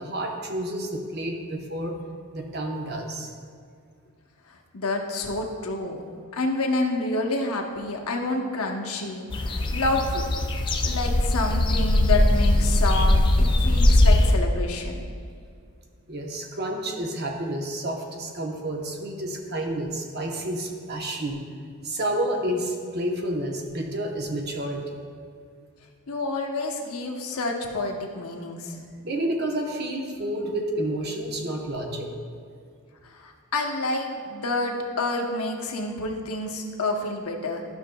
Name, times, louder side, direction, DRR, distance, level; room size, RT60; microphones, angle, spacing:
voice 1, 0.0-2.0 2.3-3.3 16.1-21.4 21.8-25.0 29.0-32.1, right 1 dB, 45° right, 2 dB, 0.8 m, -30 dB
voice 2, 4.7-6.0 6.3-10.3 10.8-15.0 26.1-28.8 33.1-37.7, left 2 dB, 85° left, 2 dB, 0.9 m, -28 dB
sound 1, 9.3-14.3, left 1 dB, 20° left, 0.3 m, -20 dB
12.0 x 6.3 x 2.2 m, 2.2 s
head